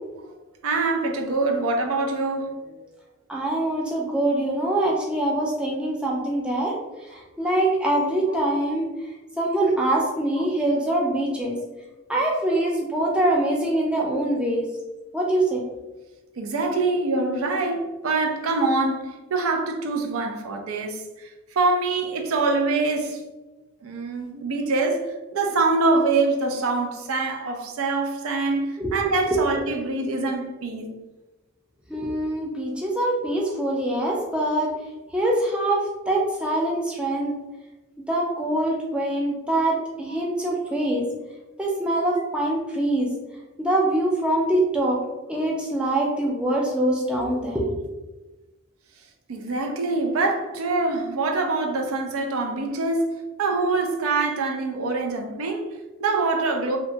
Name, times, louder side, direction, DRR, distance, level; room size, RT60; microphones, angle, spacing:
voice 1, 0.6-2.8 16.4-21.3 21.6-23.2 23.8-31.0 40.1-40.2 49.3-53.1 53.4-56.8, right 3 dB, 85° right, 0.4 m, -24 dB
voice 2, 3.3-6.7 7.4-8.9 9.4-11.6 12.1-14.6 15.1-15.6 28.8-28.9 29.3-29.4 31.9-34.7 35.1-37.3 38.1-41.0 41.6-43.1 43.6-45.0 45.3-47.8, right 1 dB, 5° right, 0.3 m, -24 dB
2.8 x 2.2 x 2.6 m
head